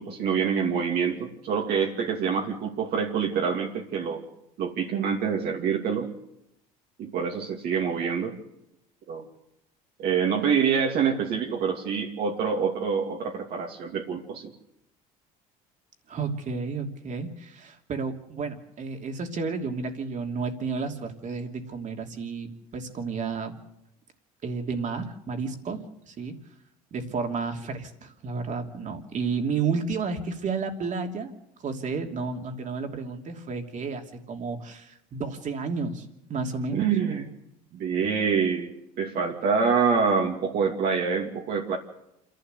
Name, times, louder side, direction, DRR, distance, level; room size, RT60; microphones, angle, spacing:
voice 1, 0.0-4.2 4.6-6.1 7.0-8.4 9.1-9.2 10.0-14.5 36.7-37.2 37.7-41.8, right 6 dB, 60° right, -1 dB, 2.7 m, -26 dB
voice 2, 16.1-23.6 24.4-26.3 26.9-31.3 31.6-36.9, right 4 dB, 45° right, 4 dB, 2.9 m, -32 dB
27.5 x 11.5 x 8.2 m, 0.83 s
supercardioid pair, 95°, 18 cm